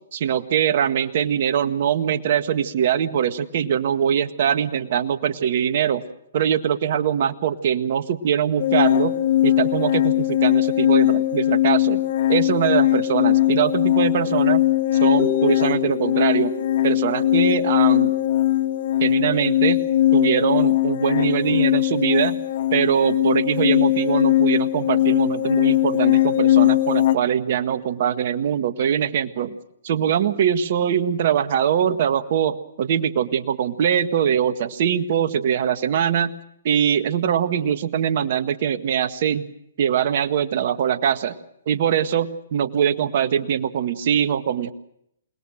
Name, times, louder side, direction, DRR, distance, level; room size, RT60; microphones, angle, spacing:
voice 1, 0.1-6.0 6.3-9.2 9.4-12.0 12.3-14.6 15.0-16.5 16.8-18.1 19.0-19.8 20.1-22.4 22.7-29.6 29.8-36.3 36.6-39.5 39.8-41.4 41.7-44.7, right 9 dB, 50° right, 10 dB, 1.7 m, -22 dB
sound 1, 8.6-27.2, left 14 dB, 50° left, 1.4 m, -20 dB
sound 2, 15.2-18.9, left 8 dB, 10° left, 5.3 m, -33 dB
28.0 x 20.5 x 6.5 m, 0.74 s
figure-of-eight pair, 125°, 0 cm